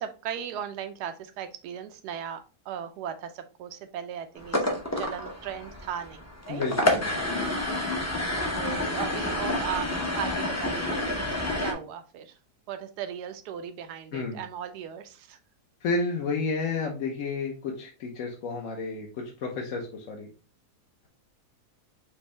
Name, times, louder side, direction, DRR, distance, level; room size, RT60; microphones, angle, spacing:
voice 1, 0.0-6.6 8.3-9.9 10.1-11.3 11.6-12.3 12.7-15.4, right 9 dB, 80° right, 9 dB, 1.2 m, -37 dB
sound 1, 4.4-11.7, left 1 dB, 20° left, 0.5 m, -29 dB
voice 2, 6.5-7.1 14.1-14.4 15.8-20.3, left 4 dB, 60° left, 0 dB, 1.0 m, -31 dB
5.3 x 2.7 x 3.2 m, 0.34 s
omnidirectional pair, 1.7 m